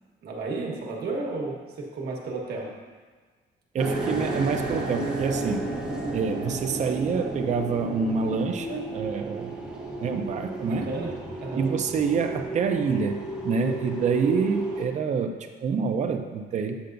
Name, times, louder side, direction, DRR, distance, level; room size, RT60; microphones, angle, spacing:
voice 1, 0.2-2.7 10.0-10.2 10.7-11.1 11.4-11.7, right 3 dB, 65° right, -1 dB, 1.3 m, -33 dB
voice 2, 3.7-5.7 6.1-9.5 10.0-10.9 11.6-16.8, right 5 dB, 40° right, 5 dB, 0.5 m, -27 dB
sound 1, 3.8-14.8, right 2 dB, 5° right, 1.1 m, -32 dB
8.1 x 6.6 x 2.6 m, 1.4 s
cardioid pair, 145°, 18 cm